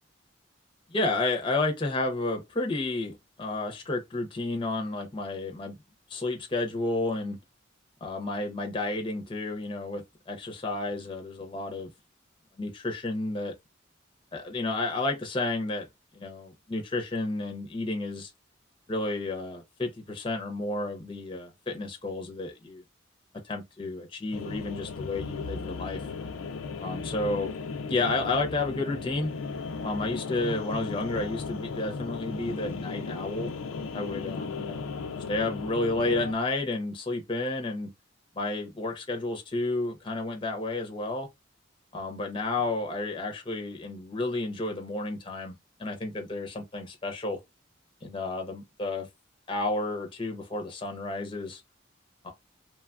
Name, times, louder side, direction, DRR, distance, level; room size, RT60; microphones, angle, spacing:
voice 1, 0.9-5.8 6.1-7.4 8.0-11.9 12.6-13.5 14.3-15.9 16.1-18.3 18.9-22.8 23.4-26.0 26.8-27.5 27.9-29.3 29.8-33.5 33.9-34.9 35.3-37.9 38.4-41.3 41.9-47.4 48.0-49.1 49.5-51.6 52.2-52.3, left 2 dB, 25° left, 0.5 m, -31 dB
sound 1, 24.3-36.3, left 4 dB, 90° left, 0.4 m, -36 dB
3.1 x 2.2 x 2.3 m
head